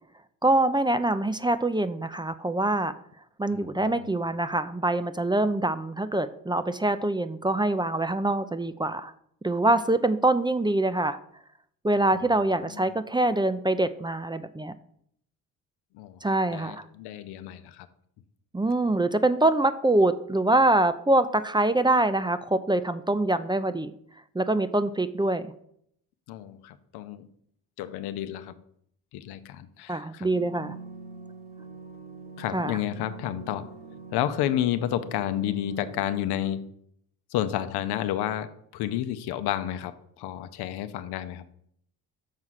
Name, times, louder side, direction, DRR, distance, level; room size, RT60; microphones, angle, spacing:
voice 1, 0.4-2.9 3.4-9.1 9.4-11.2 11.8-14.7 16.2-16.8 18.5-23.9 24.3-25.5 29.9-30.8 32.5-32.8, right 2 dB, 10° right, 12 dB, 0.5 m, -24 dB
voice 2, 3.5-4.1 12.1-12.8 15.9-16.2 16.5-17.9 26.3-27.3 27.8-28.6 29.1-30.3 32.4-33.7 34.1-36.7 37.3-41.4, left 12 dB, 85° left, 11 dB, 0.7 m, -31 dB
sound 1, 30.2-36.5, right 3 dB, 60° right, 2.0 m, -44 dB
6.6 x 4.7 x 5.8 m, 0.69 s
supercardioid pair, 60°, 38 cm